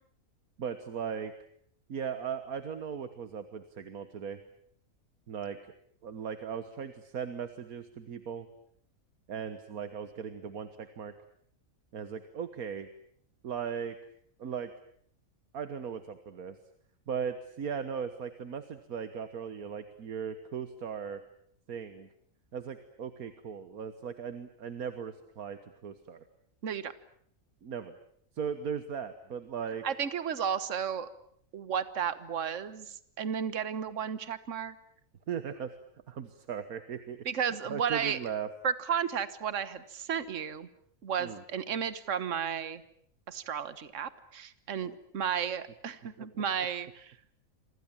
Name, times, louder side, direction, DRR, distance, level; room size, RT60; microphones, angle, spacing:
voice 1, 0.6-1.3 1.9-4.4 5.3-5.6 6.0-8.5 9.3-11.1 11.9-12.9 13.4-14.0 14.4-14.7 15.5-16.6 17.1-21.2 21.7-22.1 22.5-26.2 27.6-28.0 28.4-29.8 35.3-35.7 36.1-37.3 37.7-38.5 41.2-41.4 44.8-45.0 46.2-46.3, right 7 dB, 90° right, 10 dB, 1.8 m, -38 dB
voice 2, 29.8-31.1 31.5-34.7 37.2-38.2 38.6-40.7 41.0-42.8 43.3-47.1, right 7 dB, 60° right, 14 dB, 1.6 m, -33 dB
28.5 x 25.0 x 7.4 m, 0.64 s
omnidirectional pair, 1.5 m